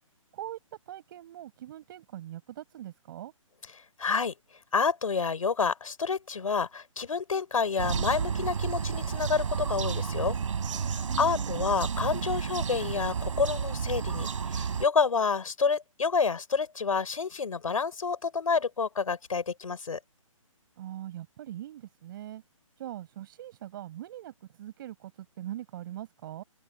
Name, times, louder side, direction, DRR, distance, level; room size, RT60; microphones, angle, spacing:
voice 1, 0.9-3.3 11.1-11.7 20.8-22.4 22.8-26.4, right 12 dB, 40° right, 6.3 m, -42 dB
voice 2, 4.0-4.3 4.7-10.4 11.2-20.0, left 5 dB, 80° left, 5.5 m, -29 dB
sound 1, 7.8-14.9, right 6 dB, 65° right, 3.7 m, -31 dB
open air
hypercardioid pair, 150°, 18 cm